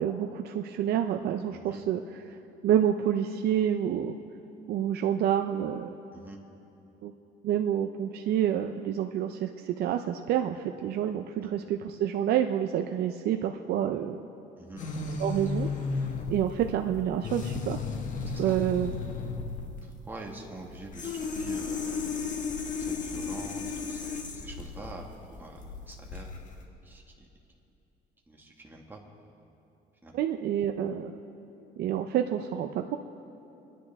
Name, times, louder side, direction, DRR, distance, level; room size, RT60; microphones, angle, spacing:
voice 1, 0.0-2.4 2.6-4.2 4.7-5.9 7.0-7.1 7.4-14.2 15.2-15.7 16.3-17.8 18.4-18.9 30.1-31.1 31.8-33.0, right 10 dB, 70° right, 6 dB, 0.6 m, -28 dB
voice 2, 1.5-1.8 6.1-6.4 11.4-11.5 14.6-14.8 18.3-18.6 19.8-22.1 22.8-26.3 26.8-27.3 28.3-29.0 30.0-30.2, right 2 dB, 10° right, -1 dB, 2.0 m, -45 dB
sound 1, 14.8-26.6, left 4 dB, 50° left, 1.7 m, -34 dB
30.0 x 10.5 x 3.5 m, 2.8 s
cardioid pair, 110°, 17 cm